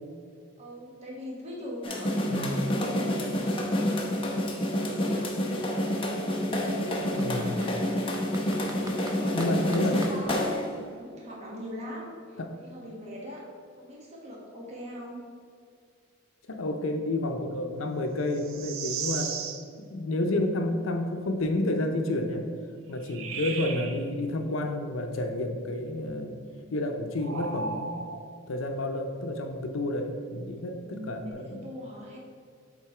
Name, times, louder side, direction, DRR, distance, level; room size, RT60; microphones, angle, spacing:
voice 1, 0.6-4.1 4.6-5.3 6.7-7.8 8.4-13.4 13.8-15.2 31.2-32.2, equal, 35° right, -3 dB, 1.2 m, -41 dB
sound 1, 1.8-10.7, left 1 dB, 25° left, 0.8 m, -28 dB
voice 2, 2.3-2.6 7.1-7.6 9.3-10.1 12.4-12.5 16.4-19.4 19.8-22.5 22.9-26.4 26.7-28.1 28.5-31.7, left 1 dB, 80° left, 5 dB, 0.6 m, -30 dB
Computer keyboard, 5.7-5.8 6.4-7.7 8.1-10.5, right 2 dB, 15° right, 0.5 m, -45 dB
sound 2, 18.3-19.7 23.0-24.0 27.2-28.4 30.9-31.3, right 5 dB, 90° right, 0.6 m, -35 dB
7.3 x 3.9 x 4.8 m, 2.2 s
head